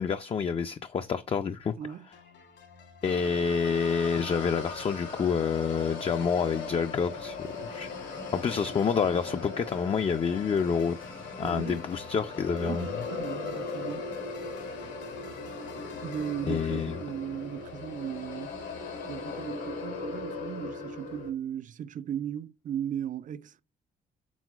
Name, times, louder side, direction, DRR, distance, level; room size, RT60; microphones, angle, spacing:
voice 1, 0.0-1.7 3.0-11.0 11.4-12.9 16.5-17.0, left 6 dB, 30° left, 0.4 m, -28 dB
voice 2, 1.8-2.1 11.4-11.9 12.6-14.1 16.0-18.5 19.0-23.6, right 9 dB, 45° right, 0.4 m, -37 dB
sound 1, 2.1-16.4, left 5 dB, 70° left, 1.4 m, -53 dB
sound 2, 3.0-21.3, left 4 dB, 90° left, 1.7 m, -38 dB
6.2 x 3.6 x 2.3 m
supercardioid pair, 65°, 19 cm